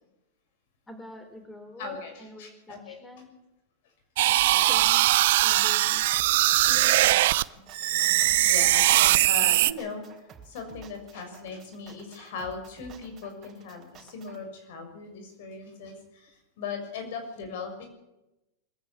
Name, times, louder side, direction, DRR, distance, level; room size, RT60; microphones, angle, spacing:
voice 1, 0.9-3.3 4.2-4.4 4.7-7.3 8.6-8.7 10.7-10.8 13.8-13.9, left 2 dB, 10° left, 6 dB, 3.3 m, -47 dB
voice 2, 1.8-3.0 4.5-4.8 5.6-5.7 6.5-6.6 7.5-7.6 8.5-10.0 10.4-17.9, left 4 dB, 70° left, 6 dB, 6.5 m, -39 dB
sound 1, 4.2-7.4 7.7-9.7, right 16 dB, 70° right, 0.6 m, -21 dB
sound 2, 6.1-14.4, right 7 dB, 30° right, 3.8 m, -51 dB
21.5 x 14.0 x 8.6 m, 0.96 s
supercardioid pair, 130°, 0 cm